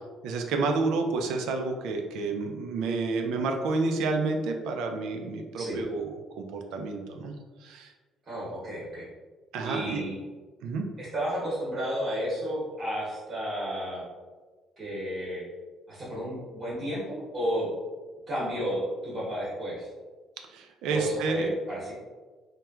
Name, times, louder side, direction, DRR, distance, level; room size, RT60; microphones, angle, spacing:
voice 1, 0.2-7.4 7.6-7.9 9.5-10.0 10.6-10.9 20.5-21.5, right 3 dB, 85° right, 3 dB, 0.3 m, -30 dB
voice 2, 8.3-9.1 9.6-10.2 11.0-14.0 14.8-15.4 15.9-17.7 18.3-19.9 20.9-21.9, equal, 25° right, -8 dB, 0.9 m, -32 dB
3.0 x 2.1 x 2.2 m, 1.4 s
cardioid pair, 150°, 0 cm